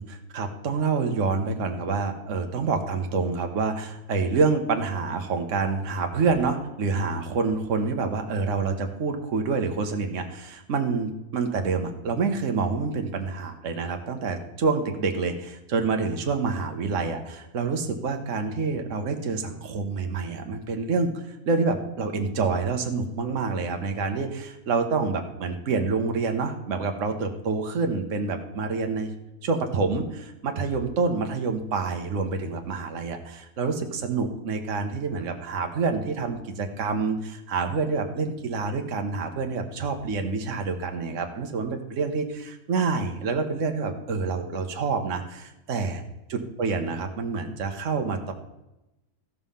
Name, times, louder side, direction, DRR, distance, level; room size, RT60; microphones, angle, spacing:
voice 1, 0.0-29.1 29.4-46.0 46.3-48.3, right 4 dB, 55° right, 5 dB, 1.4 m, -27 dB
14.5 x 5.5 x 5.6 m, 0.94 s
omnidirectional pair, 1.6 m